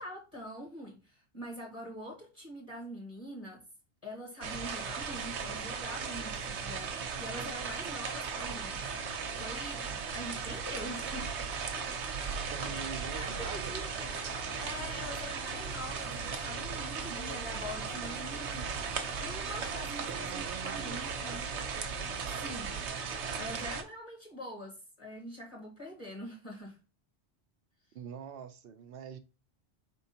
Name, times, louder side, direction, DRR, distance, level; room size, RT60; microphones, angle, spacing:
voice 1, 0.0-3.6 4.0-11.5 12.7-18.9 19.2-21.5 22.4-22.7 23.4-26.8, equal, 30° left, 1.5 m, -44 dB
sound 1, 4.4-23.8, right 5 dB, 80° right, 1.0 m, -37 dB
Dog, 10.0-12.0 13.7-15.4 17.1-19.2 19.6-19.7, left 2 dB, 80° left, 1.2 m, -55 dB
voice 2, 12.5-13.7 20.1-21.0 27.9-29.2, right 7 dB, 65° right, 0.7 m, -44 dB
4.5 x 3.5 x 2.8 m
omnidirectional pair, 1.1 m